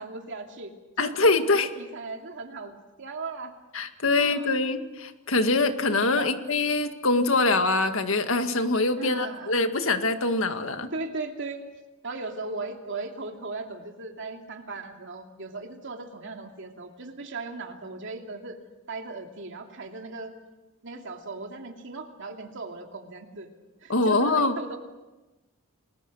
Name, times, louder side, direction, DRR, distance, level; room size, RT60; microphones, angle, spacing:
voice 1, 0.0-2.7 3.0-3.5 4.2-4.5 6.1-6.3 9.0-9.6 10.9-11.6 12.0-18.6 18.9-20.4 20.8-23.5 23.8-24.8, right 3 dB, 60° right, 3 dB, 2.8 m, -37 dB
voice 2, 1.0-1.7 3.7-10.9 23.9-24.6, left 3 dB, 70° left, 7 dB, 1.9 m, -24 dB
28.5 x 21.5 x 6.4 m, 1.1 s
head